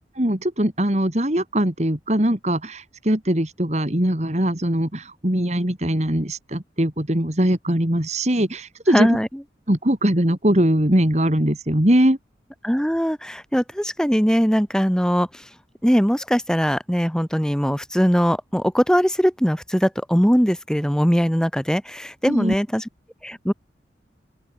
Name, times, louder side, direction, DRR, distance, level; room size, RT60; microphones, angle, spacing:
voice 1, 0.2-9.1 9.7-12.2 22.3-22.5, right 1 dB, 40° right, 2.7 m, -21 dB
voice 2, 8.9-9.3 12.6-15.3 15.8-22.8 23.2-23.5, equal, 5° left, 5.1 m, -20 dB
open air
head